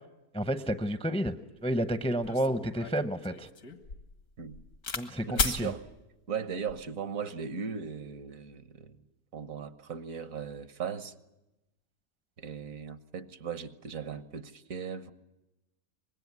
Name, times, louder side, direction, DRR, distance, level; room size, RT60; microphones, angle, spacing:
voice 1, 0.3-1.4 1.6-3.5 5.0-5.7, equal, 5° left, 0.5 m, -30 dB
sound 1, 1.7-1.8 2.2-5.1 5.4-5.6 6.5-6.8, left 4 dB, 85° left, 2.2 m, -34 dB
voice 2, 5.3-5.8 6.3-9.0 9.3-11.1 12.4-15.1, right 6 dB, 70° right, 1.5 m, -38 dB
25.0 x 20.5 x 9.5 m
omnidirectional pair, 1.5 m